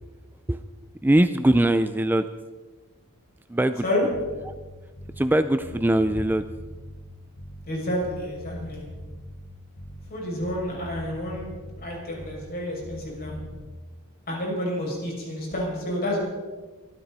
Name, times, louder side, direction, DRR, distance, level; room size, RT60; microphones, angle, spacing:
voice 1, 1.0-2.3 3.5-3.8 4.4-4.5 5.2-6.4, right 1 dB, 10° right, 11 dB, 0.4 m, -21 dB
Bass guitar, 4.1-5.4 5.6-7.8 8.0-10.2 10.4-12.6 12.8-13.7, equal, 65° left, 1.7 m, -41 dB
voice 2, 7.7-8.9 10.1-13.4 14.3-16.2, left 1 dB, 45° left, -2 dB, 6.4 m, -29 dB
24.0 x 13.5 x 4.1 m, 1.3 s
head